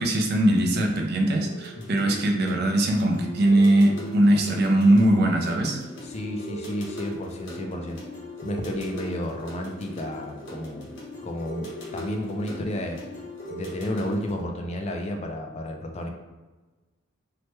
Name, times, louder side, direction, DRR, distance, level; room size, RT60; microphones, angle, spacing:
voice 1, 0.0-5.8, right 1 dB, 55° right, 2 dB, 0.5 m, -21 dB
sound 1, 0.8-14.4, left 1 dB, 65° left, 0.9 m, -39 dB
voice 2, 6.0-8.0 8.4-10.9 11.2-13.0 13.5-16.1, left 1 dB, 35° left, 3 dB, 0.4 m, -32 dB
3.2 x 2.1 x 3.0 m, 1.2 s
head